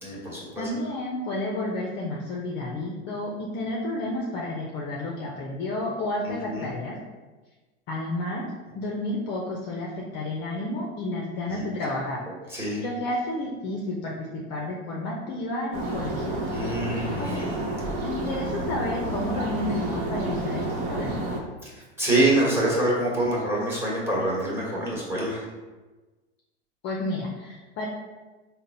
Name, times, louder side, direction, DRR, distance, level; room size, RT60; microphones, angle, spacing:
voice 1, 0.0-0.7 6.5-6.7 11.5-11.6 12.5-12.8 16.5-17.5 21.6-21.7 22.0-25.4, right 1 dB, 5° right, -5 dB, 1.3 m, -25 dB
voice 2, 0.6-7.0 7.9-8.5 8.7-12.2 12.8-16.4 17.2-17.5 18.0-21.2 26.8-27.9, left 1 dB, 30° left, -2 dB, 0.5 m, -31 dB
sound 1, 15.7-21.4, right 1 dB, 55° right, 1.0 m, -30 dB
3.8 x 2.1 x 4.1 m, 1.2 s
hypercardioid pair, 120°, 34 cm